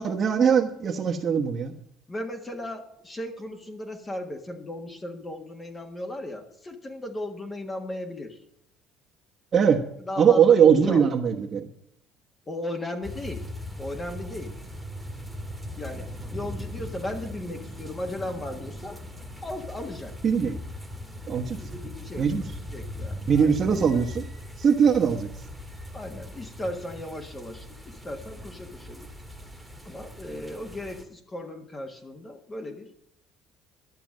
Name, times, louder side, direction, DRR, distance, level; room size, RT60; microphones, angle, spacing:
voice 1, 0.0-1.7 9.5-9.8 10.2-11.7 20.2-20.6 21.3-21.6 22.2-22.4 23.3-24.2 24.6-25.3, right 7 dB, 40° right, -2 dB, 1.3 m, -21 dB
voice 2, 2.1-8.4 10.0-11.0 12.5-13.4 13.8-14.6 15.8-19.0 19.4-20.1 21.5-22.2 22.7-23.6 25.9-29.1 29.8-33.0, left 1 dB, 20° left, 4 dB, 1.5 m, -36 dB
sound 1, 13.0-31.0, left 1 dB, ahead, 1.8 m, -39 dB
12.0 x 6.8 x 7.6 m, 0.73 s
cardioid pair, 115°, 0 cm